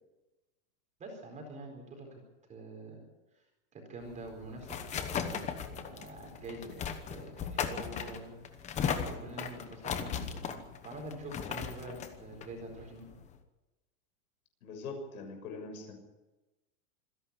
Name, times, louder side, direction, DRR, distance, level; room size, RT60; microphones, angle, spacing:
voice 1, 1.0-2.2 2.5-3.0 3.3-3.4 3.7-4.8 5.2-13.1, right 2 dB, 15° right, 2 dB, 4.4 m, -46 dB
sound 1, 4.1-13.3, left 7 dB, 15° left, 1.0 m, -37 dB
voice 2, 14.6-15.9, left 3 dB, 65° left, 5 dB, 6.9 m, -42 dB
26.5 x 11.0 x 9.8 m, 1.1 s
supercardioid pair, 170°, 46 cm